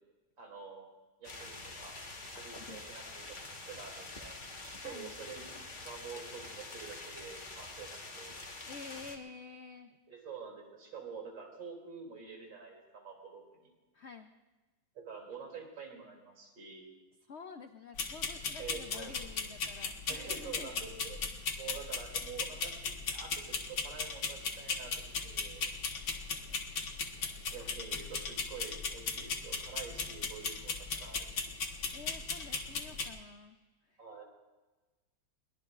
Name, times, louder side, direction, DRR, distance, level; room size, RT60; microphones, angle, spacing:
voice 1, 0.4-0.9 1.2-2.0 2.3-4.5 4.8-8.3 10.1-13.7 15.0-16.9 18.6-19.1 20.1-21.2 21.6-24.9 25.2-25.6 27.5-31.5 34.0-34.2, right 5 dB, 75° right, 1 dB, 3.6 m, -47 dB
sound 1, 1.2-9.2, left 2 dB, 30° left, 1.3 m, -46 dB
voice 2, 8.7-10.0 13.9-14.3 17.3-20.7 31.9-33.6 33.9-34.0, left 5 dB, 90° left, 6 dB, 0.6 m, -49 dB
sound 2, 18.0-33.1, left 4 dB, 70° left, 1.9 m, -38 dB
22.5 x 20.0 x 2.5 m, 1.2 s
omnidirectional pair, 2.1 m